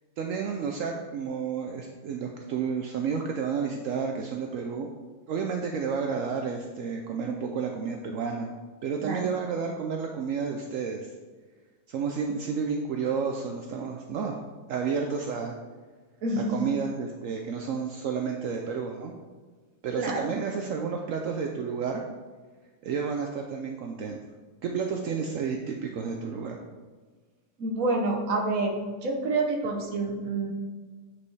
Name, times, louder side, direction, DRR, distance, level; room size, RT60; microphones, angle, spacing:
voice 1, 0.2-4.9 5.3-8.5 8.8-11.1 11.9-14.4 14.7-15.5 16.4-19.1 19.8-22.0 22.8-24.2 24.6-26.6, right 6 dB, 80° right, 2 dB, 0.7 m, -31 dB
voice 2, 9.0-9.3 16.2-16.6 19.9-20.3 27.6-30.5, right 2 dB, 55° right, 2 dB, 1.2 m, -28 dB
8.5 x 4.6 x 3.2 m, 1.4 s
omnidirectional pair, 1.9 m